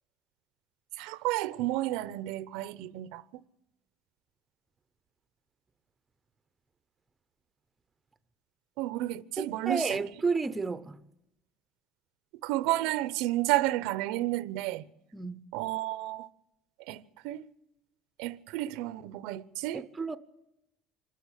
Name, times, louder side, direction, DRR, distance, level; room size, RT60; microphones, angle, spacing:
voice 1, 1.0-3.2 8.8-10.0 12.4-14.8 15.5-16.3 16.9-17.4 18.2-19.9, right 16 dB, 80° right, 0.8 m, -31 dB
voice 2, 9.4-11.0 15.1-15.4 19.7-20.2, right 4 dB, 10° right, 0.7 m, -32 dB
26.0 x 13.0 x 8.3 m
cardioid pair, 165°, 0 cm